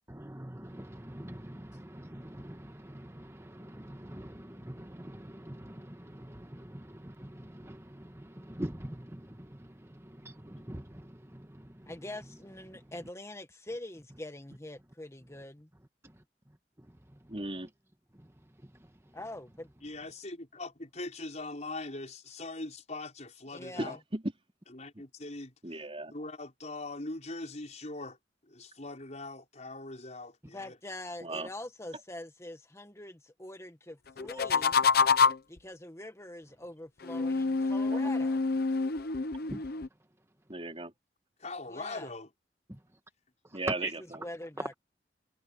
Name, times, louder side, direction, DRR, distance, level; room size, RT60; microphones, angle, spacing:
voice 1, 0.1-11.9 12.2-12.3 12.7-13.1 16.0-17.7 18.1-19.2 34.3-34.4 39.5-39.8 42.7-43.0 43.4-43.9, right 1 dB, 15° right, 1.6 m, -44 dB
voice 2, 11.8-15.7 19.1-19.7 23.5-24.0 30.4-34.8 35.5-38.4 41.7-42.1 44.2-44.7, left 1 dB, 15° left, 1.8 m, -44 dB
voice 3, 17.3-17.7 23.8-24.3 25.6-26.1 31.2-31.5 37.9-38.1 40.5-40.9 43.5-43.9, right 2 dB, 35° right, 4.5 m, -36 dB
voice 4, 19.8-24.0 24.7-25.8 26.1-28.2 28.5-30.7 41.4-42.3, left 2 dB, 40° left, 5.6 m, -41 dB
sound 1, 34.2-35.6 37.0-39.9, left 4 dB, 60° left, 1.0 m, -27 dB
head